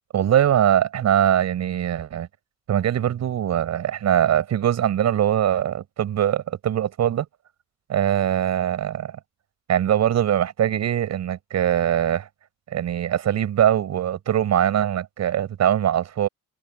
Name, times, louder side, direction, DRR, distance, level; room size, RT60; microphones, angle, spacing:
voice 1, 0.1-2.3 2.7-7.2 7.9-9.2 9.7-12.3 12.7-16.3, right 10 dB, 55° right, 6.7 m, -22 dB
cardioid pair, 165°, 32 cm